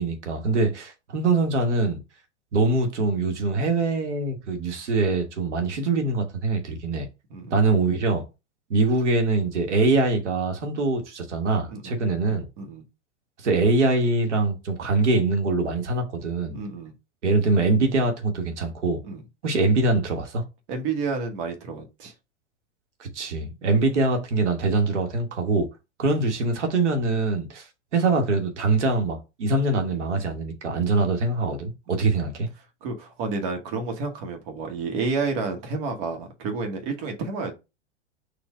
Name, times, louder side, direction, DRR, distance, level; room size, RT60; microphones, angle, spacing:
voice 1, 0.0-2.0 2.5-7.1 7.5-8.2 8.7-12.5 13.4-16.6 17.2-19.0 19.4-20.4 23.0-25.7 26.0-31.7 32.0-32.5, right 3 dB, 75° right, 1.3 m, -23 dB
voice 2, 11.7-12.0 12.6-12.8 16.5-16.9 19.0-19.2 20.7-22.1 31.0-31.1 31.9-32.0 32.8-37.5, right 4 dB, 50° right, 1.2 m, -30 dB
4.3 x 2.5 x 4.6 m
hypercardioid pair, 100°, 35 cm